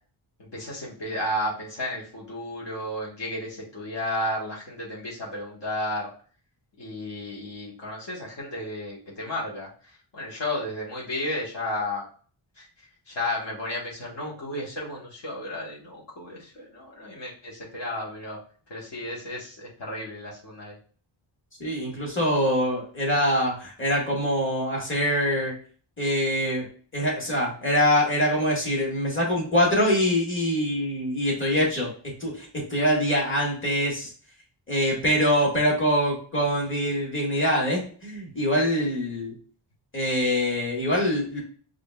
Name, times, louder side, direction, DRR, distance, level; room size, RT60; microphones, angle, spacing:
voice 1, 0.4-6.1 6.8-9.7 10.1-12.0 12.6-12.7 13.1-18.4 18.7-20.7, left 1 dB, 60° left, -5 dB, 1.3 m, -33 dB
voice 2, 21.6-25.5 26.0-26.7 26.9-34.1 34.7-39.3 39.9-41.4, equal, 25° left, -3 dB, 1.7 m, -24 dB
4.9 x 2.6 x 2.3 m, 0.43 s
cardioid pair, 70°, 48 cm